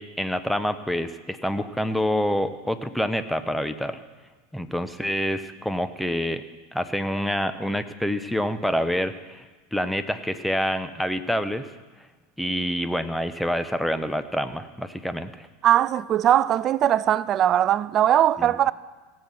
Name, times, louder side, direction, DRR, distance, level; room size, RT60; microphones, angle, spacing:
voice 1, 0.0-4.0 4.5-6.4 6.7-9.4 9.7-11.7 12.4-15.5 18.4-18.6, equal, ahead, 0.8 m, -27 dB
voice 2, 15.6-18.7, right 11 dB, 40° right, 0.3 m, -20 dB
16.5 x 7.5 x 6.3 m
hypercardioid pair, 90°, 0 cm